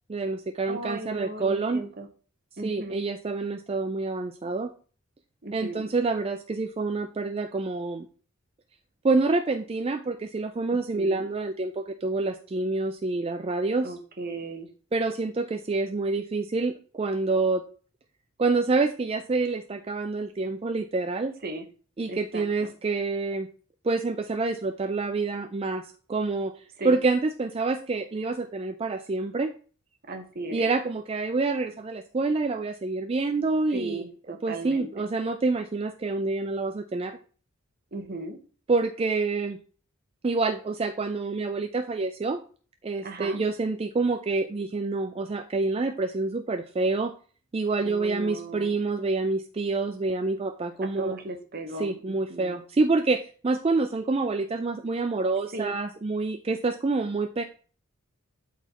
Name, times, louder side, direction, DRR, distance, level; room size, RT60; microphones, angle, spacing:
voice 1, 0.1-1.8 2.6-4.7 5.5-8.1 9.0-13.9 14.9-17.6 18.4-21.3 22.0-23.5 23.9-25.8 26.1-26.5 26.8-29.5 30.5-34.0 34.4-37.1 38.7-39.6 40.2-42.4 42.8-47.1 47.5-51.1 51.8-57.4, right 3 dB, 25° right, 7 dB, 0.3 m, -27 dB
voice 2, 0.7-2.1 2.6-3.0 5.4-5.9 10.7-11.3 13.8-14.7 21.4-21.7 22.1-22.7 26.8-27.0 30.1-30.7 33.7-35.1 37.9-38.4 43.0-43.4 47.8-48.7 50.8-52.6 55.5-55.8, right 2 dB, 45° right, 5 dB, 1.1 m, -36 dB
12.0 x 4.1 x 3.0 m, 0.40 s
head